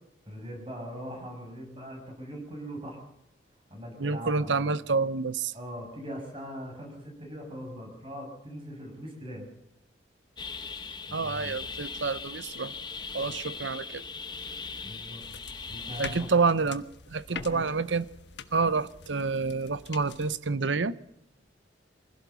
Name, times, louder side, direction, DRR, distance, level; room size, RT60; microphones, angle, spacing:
voice 1, 0.3-3.0 3.7-4.7 5.5-9.5 11.1-11.5 14.8-15.2 15.7-16.3 17.3-17.7, equal, 30° right, 2 dB, 6.6 m, -41 dB
voice 2, 4.0-5.5 11.1-12.7 13.1-14.0 16.0-16.8 17.1-18.1 18.5-21.0, right 4 dB, 75° right, 16 dB, 0.8 m, -28 dB
sound 1, 10.4-16.3, left 5 dB, 25° left, 1.1 m, -39 dB
sound 2, 15.2-20.4, left 5 dB, 70° left, 1.3 m, -45 dB
24.5 x 16.5 x 7.0 m, 0.79 s
head